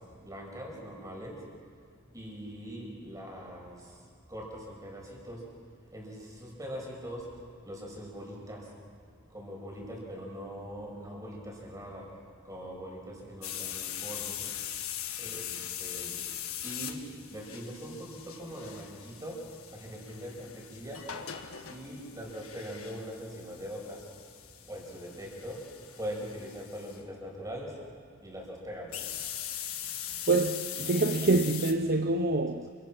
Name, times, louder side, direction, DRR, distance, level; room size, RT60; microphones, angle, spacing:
voice 1, 0.0-1.5 2.1-4.0 4.3-5.6 5.9-7.3 7.6-8.8 9.3-14.6 15.2-16.3 16.6-21.2 21.7-24.1 24.7-27.8 28.2-29.0 29.8-30.5, equal, 15° right, 6.3 m, -42 dB
Metal sound, 13.4-27.0 28.9-31.7, left 10 dB, 75° left, 1.7 m, -41 dB
voice 2, 30.3-32.7, right 2 dB, 45° right, 0.8 m, -26 dB
29.0 x 24.5 x 6.1 m
head